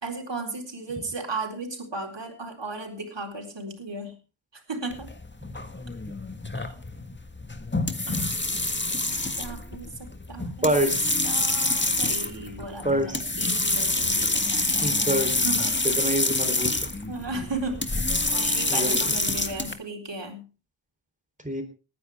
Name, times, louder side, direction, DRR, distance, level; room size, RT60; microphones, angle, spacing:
voice 1, 0.0-4.2 4.5-5.1 6.5-6.8 8.1-8.4 9.4-10.9 11.2-15.1 15.4-15.8 17.1-17.9 18.3-20.5, right 2 dB, 60° right, 2 dB, 4.3 m, -35 dB
sound 1, 4.9-19.7, left 2 dB, 25° left, 1.8 m, -27 dB
voice 2, 10.6-11.2 12.8-13.2 14.8-15.3 16.0-16.9 18.7-19.0 21.4-21.6, right 1 dB, 15° right, 6 dB, 3.8 m, -26 dB
19.5 x 10.5 x 3.6 m, 0.32 s
wide cardioid pair, 45°, 48 cm